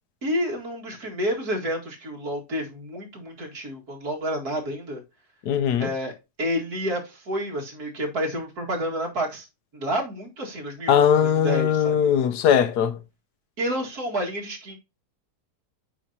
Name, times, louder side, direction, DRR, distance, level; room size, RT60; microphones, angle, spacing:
voice 1, 0.2-5.0 5.8-6.1 6.4-9.5 9.7-12.1 13.6-14.8, equal, 65° right, 2.6 m, -29 dB
voice 2, 5.5-5.9 10.9-13.0, left 8 dB, 75° left, 1.3 m, -20 dB
8.8 x 5.2 x 2.8 m
omnidirectional pair, 1.7 m